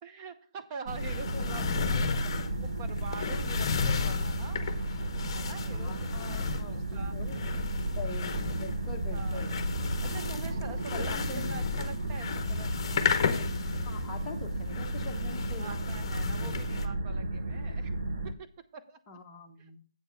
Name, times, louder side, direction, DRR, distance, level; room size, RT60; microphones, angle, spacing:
voice 1, 0.0-4.7 5.3-7.1 9.1-9.6 10.0-12.8 15.6-17.9 18.2-19.2 19.6-19.8, right 5 dB, 20° right, 7 dB, 0.7 m, -45 dB
sound 1, 0.9-16.9, left 6 dB, 35° left, 0.9 m, -34 dB
sound 2, 0.9-18.3, right 2 dB, 60° right, 1.3 m, -34 dB
voice 2, 1.3-2.4 5.7-7.4 7.9-9.5 10.2-10.4 10.9-11.5 13.8-15.8 19.1-19.8, left 3 dB, 10° left, -1 dB, 1.0 m, -44 dB
8.0 x 4.5 x 6.6 m, 0.40 s
hypercardioid pair, 165°, 3 cm